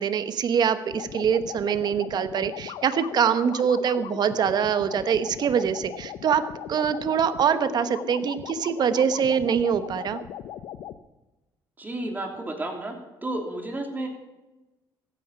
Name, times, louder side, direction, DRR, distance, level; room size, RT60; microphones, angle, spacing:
voice 1, 0.0-10.2, right 7 dB, 55° right, 11 dB, 1.2 m, -24 dB
sound 1, 0.9-11.0, left 10 dB, 75° left, 0.8 m, -38 dB
voice 2, 11.8-12.9 13.2-14.1, right 2 dB, 20° right, 2 dB, 3.1 m, -31 dB
15.5 x 9.5 x 5.6 m, 1.1 s
supercardioid pair, 85°, 9 cm